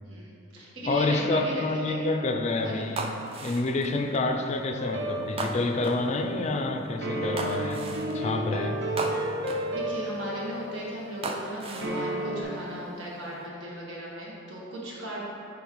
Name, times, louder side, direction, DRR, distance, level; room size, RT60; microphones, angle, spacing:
voice 1, 0.0-2.1 2.6-2.8 9.7-15.2, right 1 dB, 85° right, -5 dB, 1.5 m, -36 dB
voice 2, 0.9-3.1 3.4-7.8 8.1-8.8, left 2 dB, 35° left, 5 dB, 0.4 m, -28 dB
sound 1, 3.0-4.0 5.4-6.1 7.4-8.2 9.0-9.7 11.2-12.0 12.7-13.1, right 3 dB, 30° right, 0.4 m, -35 dB
sound 2, 4.8-6.2 7.0-11.0 11.8-12.4, equal, 65° right, 0.8 m, -32 dB
9.4 x 3.6 x 3.1 m, 2.5 s
head